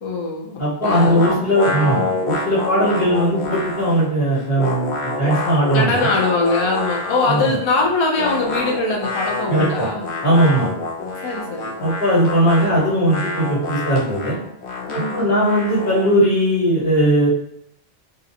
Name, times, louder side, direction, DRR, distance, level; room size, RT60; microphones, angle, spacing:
voice 1, 0.0-1.5 1.8-2.1 5.7-10.1 11.2-11.7 14.9-15.6, left 3 dB, 45° left, -1 dB, 0.3 m, -22 dB
voice 2, 0.6-6.1 7.3-7.4 9.5-9.9 10.2-10.7 11.8-14.4 14.9-17.3, right 1 dB, 65° left, -6 dB, 1.4 m, -18 dB
sound 1, 0.8-4.1 4.4-7.7 8.1-16.2, left 3 dB, 85° left, 0.9 m, -27 dB
2.5 x 2.1 x 2.7 m, 0.68 s
omnidirectional pair, 1.1 m